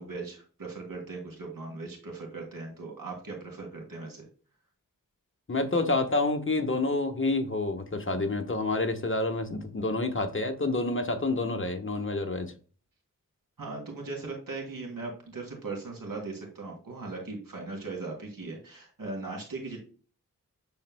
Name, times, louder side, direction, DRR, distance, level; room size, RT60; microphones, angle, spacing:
voice 1, 0.0-4.3 13.6-19.8, right 3 dB, 80° right, 0 dB, 3.0 m, -39 dB
voice 2, 5.5-12.5, left 2 dB, 35° left, 6 dB, 1.2 m, -28 dB
11.5 x 4.4 x 2.2 m, 0.38 s
wide cardioid pair, 60°, 33 cm